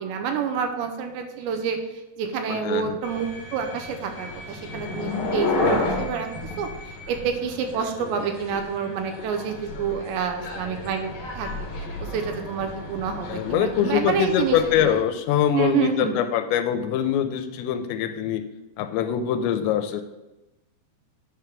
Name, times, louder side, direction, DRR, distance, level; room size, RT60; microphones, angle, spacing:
voice 1, 0.0-6.3 6.6-6.7 7.1-11.5 12.0-14.9 15.5-16.2, right 7 dB, 85° right, 5 dB, 2.8 m, -28 dB
voice 2, 2.5-3.0 13.3-18.4 18.8-20.0, left 9 dB, 85° left, 9 dB, 2.7 m, -23 dB
sound 1, 3.0-14.9, left 2 dB, 60° left, 2.0 m, -32 dB
9.2 x 3.4 x 6.0 m, 0.99 s
omnidirectional pair, 5.2 m